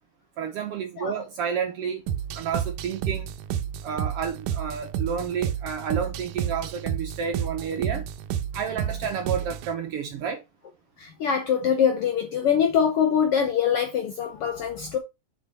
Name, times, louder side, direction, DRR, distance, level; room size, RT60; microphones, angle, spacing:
voice 1, 0.4-2.0 2.3-3.3 3.8-8.0 8.5-10.4, right 7 dB, 70° right, 1.5 m, -30 dB
sound 1, 2.1-9.7, right 9 dB, 85° right, 2.1 m, -31 dB
voice 2, 11.0-15.0, left 8 dB, 70° left, 1.4 m, -23 dB
6.9 x 4.5 x 4.2 m
omnidirectional pair, 3.5 m